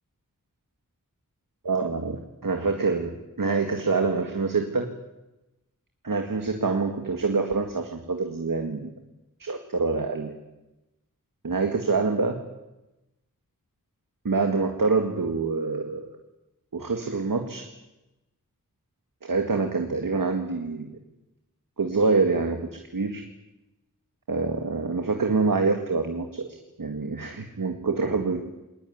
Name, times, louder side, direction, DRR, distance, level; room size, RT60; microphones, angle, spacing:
voice 1, 1.7-4.9 6.0-8.8 9.4-10.3 11.4-12.4 14.2-16.1 16.7-17.6 19.2-20.9 21.8-23.2 24.3-26.5 26.8-28.4, right 4 dB, 75° right, 4 dB, 2.0 m, -26 dB
21.0 x 19.5 x 9.4 m, 1.0 s
wide cardioid pair, 60°, 33 cm